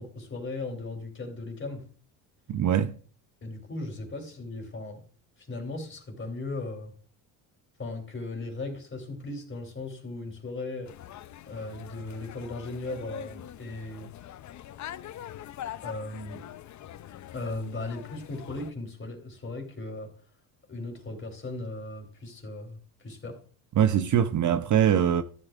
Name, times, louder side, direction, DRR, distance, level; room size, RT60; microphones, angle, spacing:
voice 1, 0.0-1.8 3.4-5.0 5.4-6.9 7.8-10.9 11.5-14.1 15.8-16.4 17.3-20.1 20.7-23.4, left 2 dB, 30° left, 3.5 m, -37 dB
voice 2, 2.5-2.9 23.8-25.2, right 9 dB, 45° right, 0.7 m, -22 dB
sound 1, 10.9-18.7, left 12 dB, 45° left, 0.6 m, -43 dB
13.5 x 8.4 x 2.5 m
supercardioid pair, 80°, 42 cm